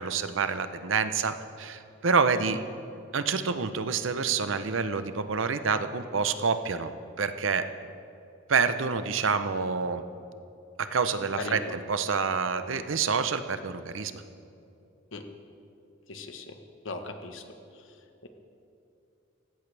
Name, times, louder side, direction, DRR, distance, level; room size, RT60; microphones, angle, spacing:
voice 1, 0.0-2.6 3.1-6.9 7.2-7.7 8.5-10.0 10.8-14.1, right 5 dB, 75° right, 10 dB, 0.7 m, -27 dB
voice 2, 11.4-11.7 15.1-15.2 16.1-16.5 16.8-17.4 18.2-18.3, left 2 dB, 70° left, 6 dB, 1.2 m, -37 dB
18.0 x 16.0 x 3.4 m, 2.7 s
head